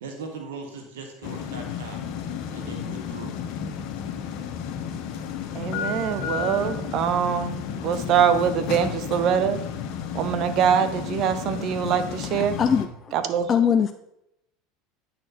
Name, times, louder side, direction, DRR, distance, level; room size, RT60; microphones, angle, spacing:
voice 1, 0.0-2.2 2.5-3.4, right 4 dB, 85° right, 4 dB, 1.2 m, -39 dB
sound 1, 1.2-12.9, left 7 dB, 60° left, 0.9 m, -32 dB
voice 2, 5.5-9.6 10.1-12.6 13.1-13.5, right 8 dB, 55° right, 11 dB, 0.8 m, -23 dB
voice 3, 12.3-13.1 13.5-13.9, left 7 dB, 35° left, 9 dB, 0.4 m, -22 dB
9.1 x 4.3 x 4.0 m, 0.83 s
hypercardioid pair, 95°, 0 cm